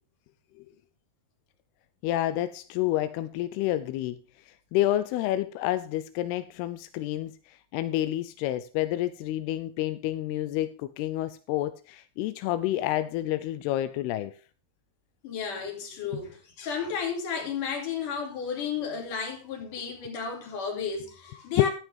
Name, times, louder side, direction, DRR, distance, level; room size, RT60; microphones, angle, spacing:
voice 1, 2.0-4.2 4.5-14.3 16.1-16.2 21.6-21.7, left 14 dB, 85° left, 2.3 m, -29 dB
voice 2, 15.2-21.7, left 6 dB, 50° left, 3.8 m, -33 dB
11.0 x 11.0 x 3.4 m
omnidirectional pair, 5.2 m